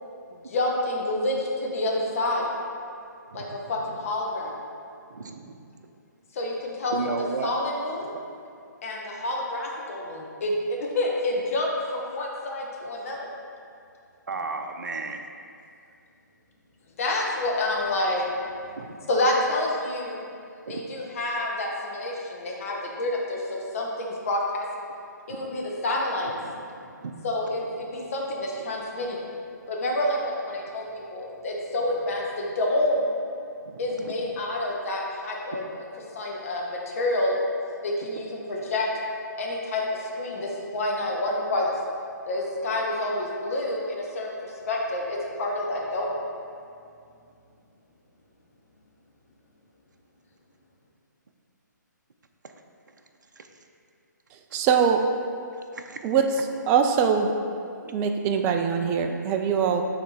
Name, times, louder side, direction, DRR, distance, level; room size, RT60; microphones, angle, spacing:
voice 1, 0.4-2.5 3.3-4.6 6.3-8.1 8.8-10.5 10.9-13.3 17.0-18.3 19.1-20.2 20.7-24.6 25.3-26.3 27.2-29.3 29.7-33.1 33.8-35.8 36.1-37.3 37.8-38.9 39.4-41.7 42.3-46.2, left 1 dB, 45° left, -2 dB, 1.3 m, -28 dB
voice 2, 3.3-3.7 5.1-5.6 6.9-7.5 8.1-8.2 14.3-15.3 18.7-19.0 20.7-20.9 25.3-25.4 26.2-27.2 27.8-28.1 33.6-34.1 53.4-53.5 54.5-54.6 55.7-56.0, right 4 dB, 70° right, 5 dB, 0.6 m, -35 dB
voice 3, 54.3-55.0 56.0-56.3 56.7-57.3 57.8-59.8, right 7 dB, 15° right, 5 dB, 0.3 m, -23 dB
9.1 x 3.4 x 4.2 m, 2.4 s
figure-of-eight pair, 140°, 10 cm